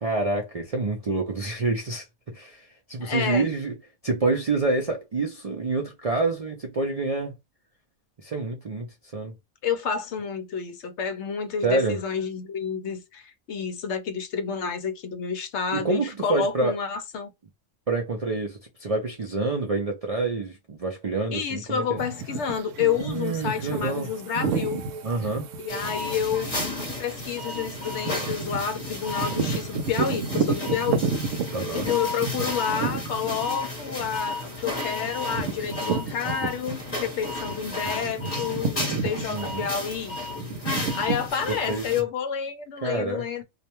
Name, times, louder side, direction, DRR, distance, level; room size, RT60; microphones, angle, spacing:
voice 1, 0.0-3.7 4.0-7.4 8.2-8.9 9.1-9.3 11.6-12.0 15.7-16.7 17.9-22.0 23.0-24.1 25.0-25.5 31.5-31.9 39.3-39.7 41.7-41.8 42.8-43.2, right 3 dB, 55° right, 0.4 m, -27 dB
voice 2, 3.0-3.5 9.6-17.3 21.3-24.8 25.6-26.5 27.0-31.1 31.7-40.2 40.9-43.4, left 7 dB, 70° left, 0.8 m, -29 dB
sound 1, 22.0-37.1 37.5-41.3, right 5 dB, 75° right, 0.9 m, -32 dB
sound 2, 25.7-42.0, left 2 dB, 30° left, 0.9 m, -33 dB
2.4 x 2.1 x 2.8 m
omnidirectional pair, 1.3 m